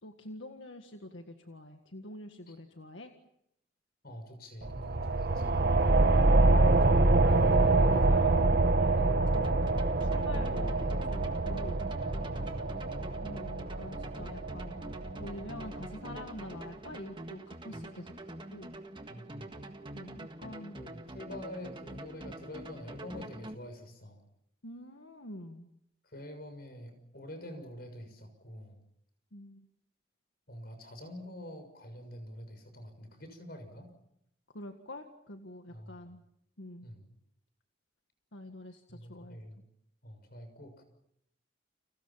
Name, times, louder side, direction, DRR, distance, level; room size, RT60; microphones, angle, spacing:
voice 1, 0.0-3.1 6.2-11.8 13.2-18.1 18.5-18.7 19.9-20.8 24.6-25.7 29.3-29.7 34.5-36.2 36.6-36.9 38.3-39.4, left 1 dB, 80° left, 5 dB, 1.9 m, -46 dB
voice 2, 4.0-5.7 12.0-12.9 17.7-17.8 19.1-19.5 20.7-24.2 26.0-28.8 30.5-33.9 35.7-36.1 36.8-37.0 38.9-39.6 40.0-40.8, left 1 dB, 55° left, 8 dB, 6.5 m, -46 dB
sound 1, 4.6-15.8, right 2 dB, 55° right, 1.1 m, -26 dB
sound 2, 9.3-23.5, right 1 dB, 25° right, 1.7 m, -45 dB
30.0 x 27.5 x 5.9 m, 0.77 s
head